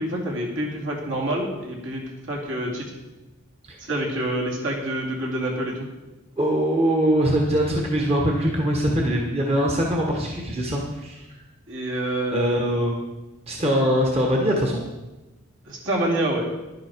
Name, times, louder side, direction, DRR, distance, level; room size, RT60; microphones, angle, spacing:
voice 1, 0.0-2.9 3.8-5.8 11.7-12.6 15.7-16.5, right 1 dB, 60° right, -1 dB, 2.5 m, -27 dB
voice 2, 6.4-11.4 12.3-12.9 13.5-14.8, equal, 30° right, 0 dB, 1.3 m, -22 dB
11.0 x 10.5 x 4.7 m, 1.1 s
head